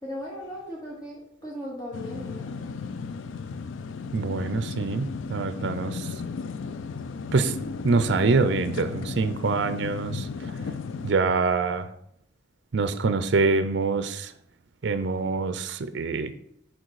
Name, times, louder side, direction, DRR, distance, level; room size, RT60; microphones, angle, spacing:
voice 1, 0.0-2.5, equal, 20° left, -5 dB, 1.2 m, -37 dB
sound 1, 1.9-11.1, left 4 dB, 80° left, 0.4 m, -35 dB
voice 2, 4.1-6.1 7.3-10.3 11.0-11.9 12.7-14.3 14.8-16.3, right 4 dB, 65° right, 11 dB, 0.5 m, -25 dB
6.4 x 4.6 x 4.7 m, 0.74 s
head